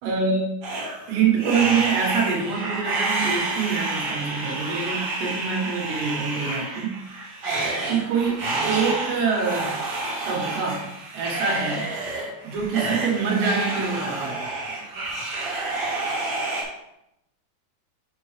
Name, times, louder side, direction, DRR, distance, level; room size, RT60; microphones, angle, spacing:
voice 1, 0.0-0.5 1.1-7.0 7.9-9.8 10.3-10.9 11.1-11.9 12.4-14.4, right 5 dB, 75° right, -2 dB, 3.5 m, -25 dB
sound 1, 0.6-16.6, right 2 dB, 55° right, 1.8 m, -29 dB
6.9 x 6.0 x 3.2 m, 0.82 s
omnidirectional pair, 4.9 m